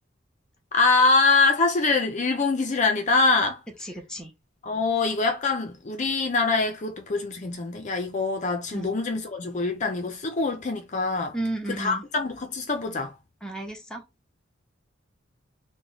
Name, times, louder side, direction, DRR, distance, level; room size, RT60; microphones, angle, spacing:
voice 1, 0.7-3.6 4.6-11.3 11.8-13.1, left 3 dB, 40° left, 0.5 m, -24 dB
voice 2, 3.8-4.3 8.7-8.9 11.3-12.0 13.4-14.0, right 2 dB, 5° left, 0.7 m, -33 dB
3.0 x 2.2 x 3.9 m
head